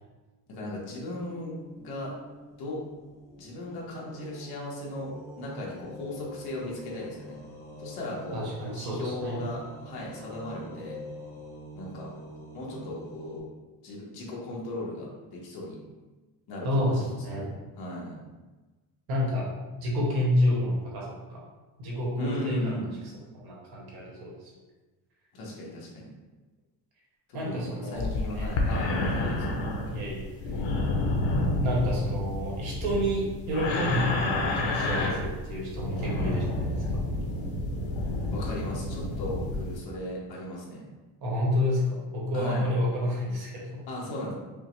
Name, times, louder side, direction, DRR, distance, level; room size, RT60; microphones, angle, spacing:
voice 1, 0.5-2.1 2.6-2.8 3.4-7.4 7.8-8.5 8.7-11.0 11.7-12.1 12.5-13.5 13.8-15.8 16.5-17.5 17.8-18.1 22.2-22.8 25.3-26.1 27.3-29.6 38.3-40.8 42.3-42.7 43.9-44.3, left 1 dB, 55° left, -3 dB, 1.1 m, -37 dB
sound 1, 0.8-13.4, equal, 5° left, 0.4 m, -45 dB
voice 2, 8.3-9.4 16.6-17.5 19.1-19.5 19.8-21.4 21.8-22.9 23.4-24.5 27.3-28.5 29.9-30.6 31.6-37.0 41.2-43.8, left 1 dB, 55° right, -3 dB, 1.2 m, -29 dB
sound 2, 28.0-39.8, left 2 dB, 80° left, 0.8 m, -29 dB
5.4 x 2.1 x 3.1 m, 1.2 s
cardioid pair, 175°, 46 cm